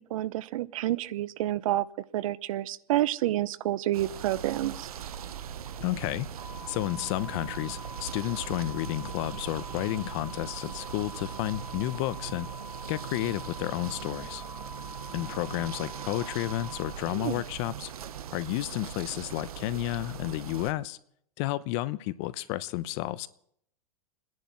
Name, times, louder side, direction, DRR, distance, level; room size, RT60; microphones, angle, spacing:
voice 1, 0.0-1.9 2.1-4.9 17.1-17.4, right 14 dB, 70° right, 0.7 m, -29 dB
sound 1, 3.9-20.7, right 9 dB, 85° right, 1.0 m, -40 dB
voice 2, 5.8-6.3 6.7-12.5 12.9-14.4 15.1-17.9 18.3-21.0 21.4-23.3, left 16 dB, 50° left, 0.8 m, -31 dB
sound 2, 6.4-16.9, left 1 dB, 25° right, 7.0 m, -45 dB
29.0 x 11.0 x 4.4 m
hypercardioid pair, 120°, 18 cm